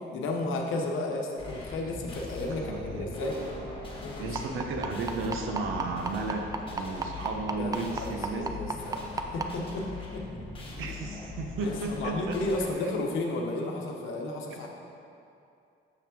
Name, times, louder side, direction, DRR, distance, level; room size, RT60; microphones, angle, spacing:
voice 1, 0.1-3.4 4.0-4.4 7.6-9.0 9.3-9.9 10.1-10.2 10.8-10.9 11.6-14.7, left 2 dB, 85° left, 1 dB, 0.9 m, -33 dB
sound 1, 1.4-12.7, left 3 dB, 25° left, 1.6 m, -41 dB
voice 2, 2.5-3.1 4.2-8.6 10.8-12.4 12.7-12.9 14.5-14.7, right 3 dB, 90° right, 3 dB, 0.8 m, -34 dB
sound 2, 3.2-6.0, right 4 dB, 55° right, 1.5 m, -45 dB
sound 3, 4.4-9.5 10.5-10.6 11.0-11.1 11.6-11.7, right 4 dB, 20° right, 0.4 m, -31 dB
6.9 x 3.4 x 6.0 m, 2.6 s
cardioid pair, 90°, 20 cm